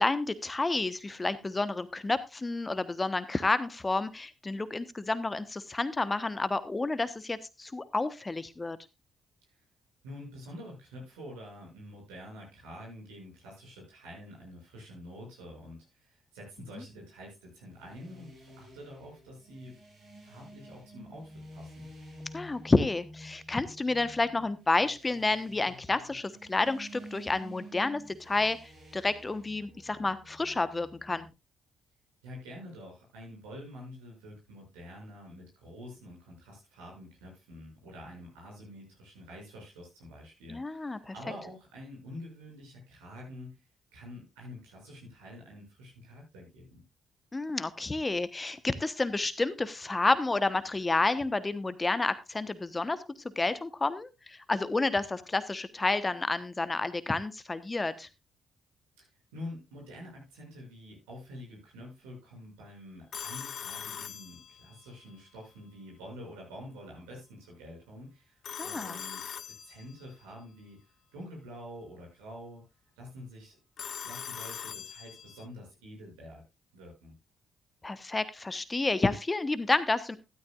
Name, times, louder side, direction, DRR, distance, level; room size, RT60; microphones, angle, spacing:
voice 1, 0.0-8.8 16.7-16.8 22.3-31.3 40.5-41.1 47.3-53.0 53.4-58.1 68.6-69.0 77.8-80.2, left 3 dB, 25° left, 14 dB, 1.2 m, -30 dB
voice 2, 10.0-19.8 20.2-21.9 32.2-43.6 43.9-46.8 59.0-70.8 71.1-72.6 73.0-73.6 74.0-76.4 76.7-77.1, equal, 80° right, -2 dB, 7.3 m, -47 dB
sound 1, 17.6-31.3, equal, 65° right, 7.8 m, -50 dB
Telephone, 63.1-64.9 68.4-70.1 73.8-75.5, left 8 dB, 55° left, 0.8 m, -41 dB
13.0 x 13.0 x 2.5 m, 0.24 s
hypercardioid pair, 45°, 0 cm